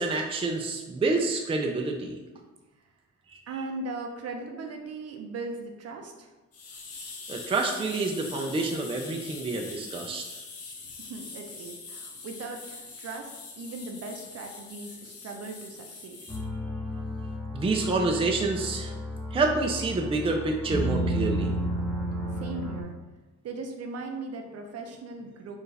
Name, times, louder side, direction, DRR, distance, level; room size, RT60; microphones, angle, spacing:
voice 1, 0.0-2.2 3.3-3.4 7.3-10.3 17.5-18.9 19.3-21.6, right 3 dB, 20° right, 2 dB, 0.5 m, -28 dB
voice 2, 3.5-6.3 11.0-16.2 22.4-22.9 23.4-25.6, right 3 dB, 55° right, 3 dB, 0.7 m, -38 dB
sound 1, 6.5-16.4, left 4 dB, 55° left, 0.9 m, -43 dB
sound 2, 16.3-22.8, equal, 5° left, 0.9 m, -32 dB
4.5 x 2.5 x 3.3 m, 1.1 s
cardioid pair, 90°, 30 cm